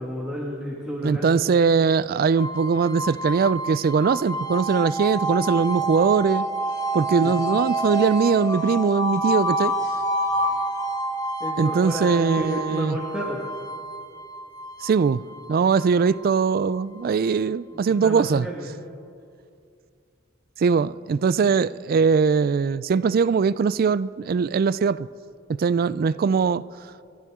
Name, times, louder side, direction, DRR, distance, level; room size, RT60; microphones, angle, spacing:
voice 1, 0.0-1.3 7.2-7.3 11.4-13.4 18.0-18.7, equal, 5° right, 1.8 m, -31 dB
voice 2, 1.0-6.4 6.9-9.7 11.6-13.0 14.8-15.2 15.5-18.5 20.6-25.1 25.5-26.7, right 5 dB, 50° right, 0.3 m, -21 dB
sound 1, 2.4-17.3, right 1 dB, 20° left, 1.1 m, -28 dB
29.5 x 12.0 x 3.7 m
head